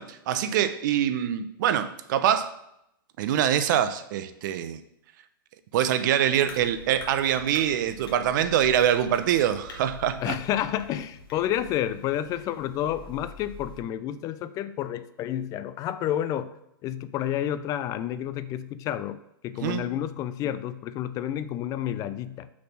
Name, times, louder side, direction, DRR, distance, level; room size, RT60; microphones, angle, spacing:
voice 1, 0.0-2.5 3.2-4.8 5.7-10.4 19.6-19.9, right 10 dB, 55° right, 11 dB, 0.6 m, -24 dB
sound 1, 6.4-13.8, left 4 dB, 80° left, 1.3 m, -46 dB
voice 2, 10.2-16.5 16.8-22.5, left 11 dB, 30° left, 14 dB, 0.3 m, -30 dB
5.9 x 4.2 x 6.0 m, 0.80 s
hypercardioid pair, 125°, 12 cm